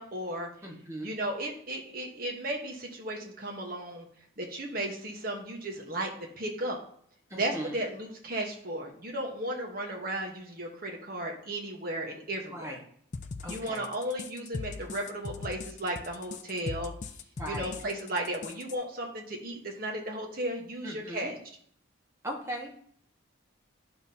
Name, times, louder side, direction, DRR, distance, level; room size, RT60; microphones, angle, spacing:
voice 1, 0.0-0.5 1.0-4.1 4.4-6.1 6.4-6.8 7.4-12.8 13.5-16.9 17.5-21.4, right 1 dB, 45° right, 1 dB, 1.2 m, -35 dB
voice 2, 0.6-1.1 7.3-7.7 12.5-12.8 13.4-13.9 17.4-17.7 20.8-21.3 22.2-22.8, right 1 dB, 15° right, -1 dB, 1.3 m, -38 dB
sound 1, 13.1-18.8, left 4 dB, 35° left, 0.4 m, -39 dB
10.5 x 5.9 x 2.8 m, 0.62 s
head